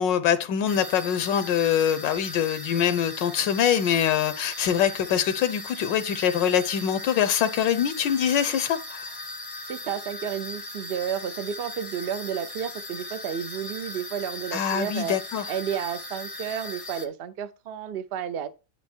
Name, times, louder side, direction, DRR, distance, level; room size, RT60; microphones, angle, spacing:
voice 1, 0.0-9.0 14.5-15.4, left 9 dB, 75° left, 1.3 m, -24 dB
sound 1, 0.7-17.1, left 2 dB, 30° left, 0.6 m, -38 dB
voice 2, 9.7-15.2 15.5-18.5, right 8 dB, 85° right, 0.5 m, -32 dB
9.7 x 4.3 x 4.4 m
omnidirectional pair, 2.1 m